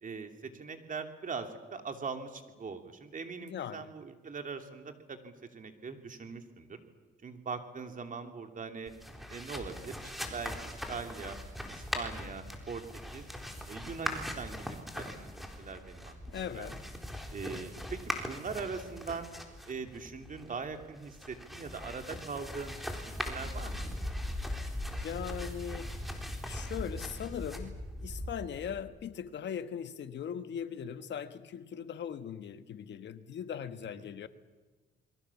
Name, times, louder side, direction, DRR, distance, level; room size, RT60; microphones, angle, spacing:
voice 1, 0.0-6.8 7.2-8.9 9.3-11.4 11.7-12.8 13.1-13.3 13.7-16.7 17.3-19.3 19.7-22.8 23.1-23.9, right 5 dB, 40° right, 6 dB, 3.0 m, -41 dB
voice 2, 3.4-3.9 16.3-16.8 25.0-26.0 26.5-34.3, left 8 dB, 65° left, 11 dB, 1.4 m, -40 dB
sound 1, 8.9-28.8, left 1 dB, ahead, 4.0 m, -40 dB
27.5 x 22.5 x 7.3 m, 1.3 s
cardioid pair, 90°, 20 cm